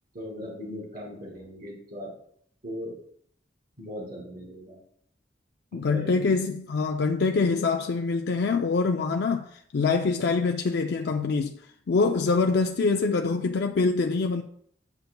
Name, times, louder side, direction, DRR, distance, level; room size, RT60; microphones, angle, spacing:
voice 1, 0.1-2.1 2.6-3.0 3.8-4.8 5.7-6.4, equal, 55° right, 2.2 m, -38 dB
voice 2, 5.7-11.6 11.9-14.4, left 4 dB, 65° left, 0.4 m, -25 dB
9.5 x 6.7 x 2.2 m
head